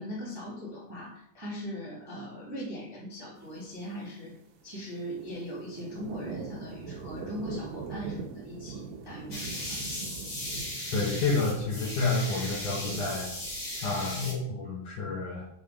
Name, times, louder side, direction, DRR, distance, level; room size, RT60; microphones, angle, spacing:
voice 1, 0.0-4.3 4.6-9.9, equal, 10° right, -7 dB, 1.2 m, -40 dB
sound 1, 3.6-4.0 4.7-14.3, right 5 dB, 85° right, 3.0 m, -42 dB
sound 2, 9.3-14.3, left 1 dB, 25° left, 2.4 m, -37 dB
voice 2, 10.9-13.3 13.8-15.4, left 3 dB, 65° left, -3 dB, 2.2 m, -29 dB
7.2 x 4.0 x 4.9 m, 0.72 s
omnidirectional pair, 4.7 m